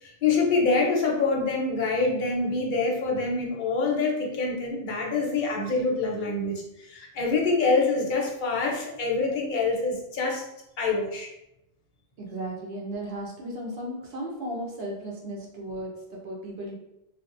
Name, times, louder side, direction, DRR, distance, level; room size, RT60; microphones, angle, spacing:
voice 1, 0.0-10.4 10.8-11.3, left 3 dB, 55° left, -1 dB, 0.7 m, -26 dB
voice 2, 12.2-16.7, right 1 dB, 70° right, -1 dB, 0.9 m, -35 dB
2.8 x 2.1 x 2.4 m, 0.86 s
omnidirectional pair, 1.1 m